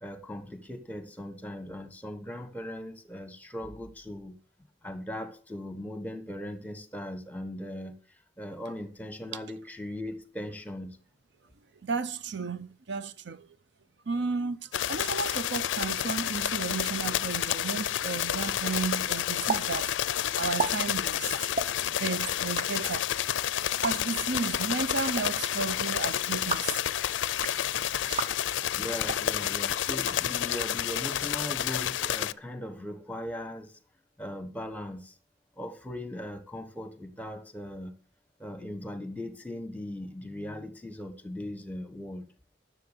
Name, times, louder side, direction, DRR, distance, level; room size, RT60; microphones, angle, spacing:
voice 1, 0.0-4.4 4.8-8.0 8.4-11.0 28.8-33.8 34.2-35.1 35.6-37.9 38.4-42.2, left 1 dB, 10° left, 1.2 m, -39 dB
voice 2, 11.8-13.5 14.1-19.9 20.3-21.3 22.0-23.3 23.8-26.8 28.1-28.3, right 4 dB, 70° right, 0.6 m, -33 dB
sound 1, 14.7-32.3, left 11 dB, 80° left, 0.4 m, -30 dB
sound 2, 19.5-19.6 19.9-20.0 20.4-20.7 21.5-21.7 22.4-22.7 23.7-23.9 24.9-25.2 26.3-26.7 27.3-27.6 28.1-28.3 29.0-29.2 29.9-30.6, right 4 dB, 40° right, 0.8 m, -33 dB
10.5 x 6.9 x 6.6 m
head